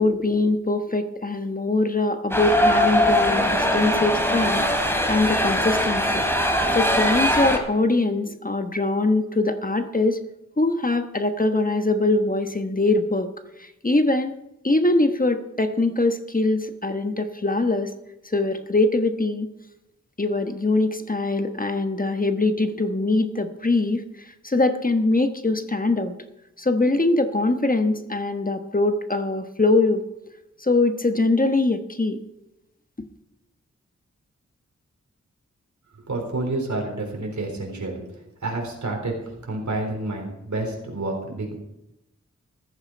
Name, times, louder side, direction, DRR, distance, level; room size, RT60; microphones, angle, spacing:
voice 1, 0.0-6.3 6.7-10.2 10.6-13.3 13.6-14.3 14.6-17.9 18.2-19.5 20.2-26.1 26.6-30.0 30.6-32.2, left 2 dB, 30° left, 8 dB, 1.2 m, -22 dB
sound 1, 2.3-7.6, equal, 10° left, 2.8 m, -21 dB
voice 2, 36.1-38.1 38.4-39.2 39.5-41.6, right 2 dB, 80° right, 1 dB, 3.8 m, -29 dB
14.5 x 13.5 x 4.6 m, 0.90 s
wide cardioid pair, 55°, 29 cm